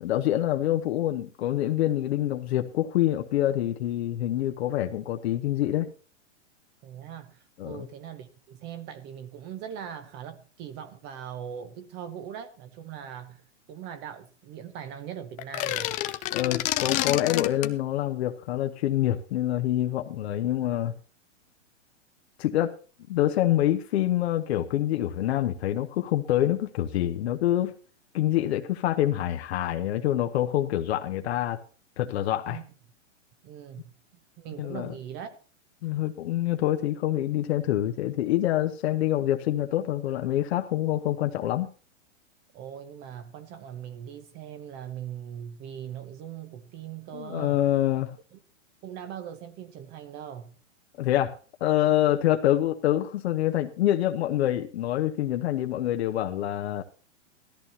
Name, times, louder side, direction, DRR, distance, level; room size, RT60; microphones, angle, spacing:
voice 1, 0.0-5.9 7.6-7.9 16.3-20.9 22.4-22.7 23.1-27.7 28.1-31.6 32.0-32.6 34.6-34.9 35.8-41.7 47.1-48.2 51.0-51.3 51.6-56.8, left 13 dB, 60° left, 1.0 m, -26 dB
voice 2, 6.8-13.4 13.7-16.0 32.5-32.6 33.4-33.9 34.4-35.4 42.5-47.6 48.3-48.4 48.8-50.5, right 9 dB, 30° right, 0.8 m, -40 dB
sound 1, 15.4-17.7, left 15 dB, 20° left, 0.5 m, -29 dB
16.5 x 13.5 x 2.8 m
hypercardioid pair, 140°, 36 cm